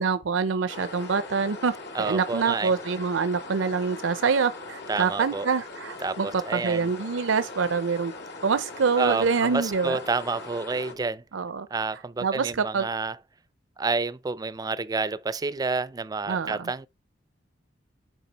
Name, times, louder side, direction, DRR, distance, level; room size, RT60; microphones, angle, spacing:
voice 1, 0.0-1.7 2.0-6.3 6.5-8.1 8.4-10.0 11.3-11.9 12.2-12.9 16.3-16.7, right 5 dB, 80° right, 0.6 m, -25 dB
sound 1, 0.7-10.9, left 3 dB, 60° left, 2.0 m, -40 dB
voice 2, 1.9-2.7 4.9-5.5 6.0-6.9 9.0-11.2 11.7-13.2 13.8-16.9, right 4 dB, 20° right, 0.4 m, -29 dB
9.0 x 4.9 x 4.0 m
head